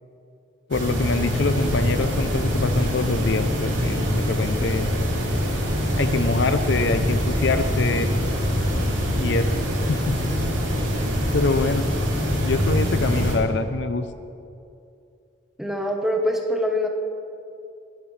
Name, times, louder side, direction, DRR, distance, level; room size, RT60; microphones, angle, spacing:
voice 1, 0.7-4.9 6.0-8.1 9.1-9.5 9.9-10.1 11.3-11.9 12.4-14.1, left 3 dB, 65° left, 10 dB, 0.6 m, -24 dB
sound 1, 0.7-13.4, equal, 85° right, 3.3 m, -24 dB
voice 2, 15.6-16.9, equal, ahead, 1 dB, 1.1 m, -24 dB
20.0 x 12.5 x 3.3 m, 2.5 s
head